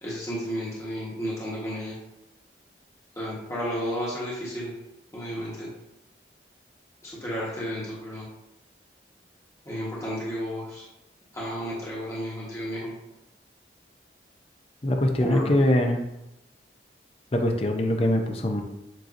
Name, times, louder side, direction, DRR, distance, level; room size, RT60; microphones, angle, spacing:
voice 1, 0.0-2.0 3.1-4.7 5.1-5.7 7.0-8.3 9.6-10.9 11.3-12.9 15.2-15.5, equal, 15° left, -7 dB, 1.2 m, -32 dB
voice 2, 14.8-16.1 17.3-18.6, left 1 dB, 30° left, 4 dB, 0.5 m, -23 dB
7.5 x 2.8 x 2.6 m, 0.91 s
head